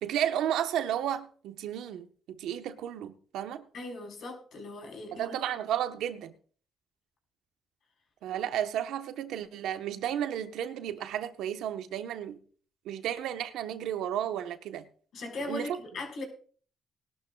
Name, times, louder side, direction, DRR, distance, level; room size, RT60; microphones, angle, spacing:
voice 1, 0.0-3.6 5.1-6.3 8.2-12.4 12.8-14.8 15.5-15.8, right 10 dB, 85° right, 1.0 m, -33 dB
voice 2, 3.7-5.4 15.1-16.2, left 2 dB, 65° left, 4.4 m, -39 dB
20.0 x 12.0 x 2.3 m
cardioid pair, 90°, 0 cm